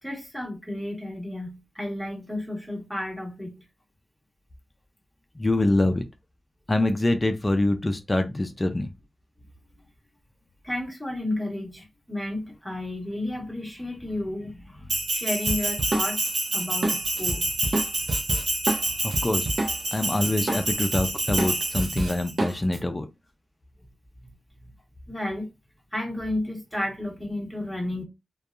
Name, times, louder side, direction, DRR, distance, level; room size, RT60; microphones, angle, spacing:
voice 1, 0.0-3.6 10.6-16.2 16.5-17.7 24.2-24.3 24.6-24.7 25.1-25.5 25.9-28.0, left 1 dB, 5° left, 1.4 m, -32 dB
voice 2, 5.4-6.1 6.7-8.9 19.0-19.5 19.9-23.1, left 1 dB, 30° left, 0.5 m, -25 dB
Bell, 14.9-22.3, right 2 dB, 75° right, 0.9 m, -28 dB
Drum kit, 15.5-20.0 20.2-22.8, right 1 dB, 55° right, 0.6 m, -29 dB
2.6 x 2.3 x 2.4 m
cardioid pair, 50°, 0 cm